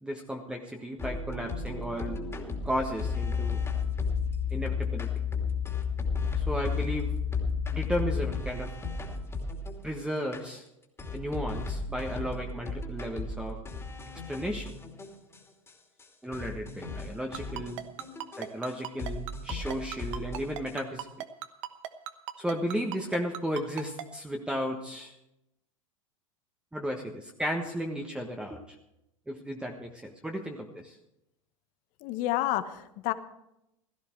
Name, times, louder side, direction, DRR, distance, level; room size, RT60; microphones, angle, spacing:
voice 1, 0.0-2.2 2.6-3.6 4.5-5.1 6.3-7.1 7.7-8.7 9.8-10.6 11.1-13.6 14.3-14.7 16.2-17.8 18.3-21.1 22.4-25.1 26.7-28.8 29.3-31.0, equal, 5° right, 2 dB, 1.4 m, -34 dB
sound 1, 1.0-9.9 10.3-10.4 11.0-15.4 15.7-15.8 16.0-16.1 16.3-18.7 19.0-20.7, left 5 dB, 15° left, 2.6 m, -33 dB
Ringtone, 17.3-24.0, right 12 dB, 60° right, 1.2 m, -36 dB
voice 2, 32.0-33.1, left 15 dB, 50° left, 11 dB, 1.2 m, -29 dB
16.5 x 13.5 x 4.6 m, 0.85 s
hypercardioid pair, 90°, 17 cm